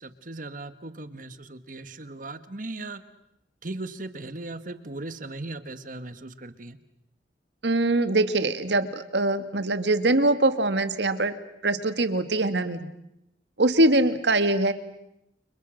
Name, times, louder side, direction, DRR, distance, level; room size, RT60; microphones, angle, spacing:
voice 1, 0.0-3.0 3.6-6.8, right 2 dB, 50° right, 12 dB, 1.7 m, -38 dB
voice 2, 7.6-11.3 11.6-12.9 13.6-14.7, right 2 dB, 70° right, 11 dB, 2.0 m, -23 dB
30.0 x 29.5 x 6.6 m, 0.84 s
head